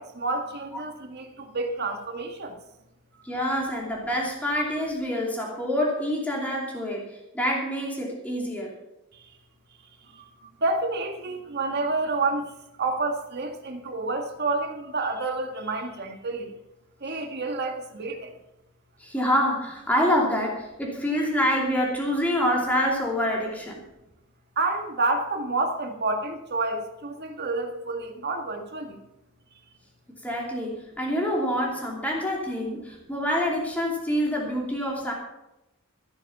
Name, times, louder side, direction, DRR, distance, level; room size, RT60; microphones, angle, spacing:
voice 1, 0.0-2.6 10.6-12.5 12.8-16.5 17.0-18.3 20.0-20.1 24.6-29.0, right 3 dB, 50° right, 4 dB, 1.7 m, -29 dB
voice 2, 3.2-7.0 7.3-8.7 19.0-23.8 30.2-35.1, equal, 5° left, -3 dB, 2.8 m, -26 dB
14.5 x 9.6 x 5.6 m, 0.91 s
head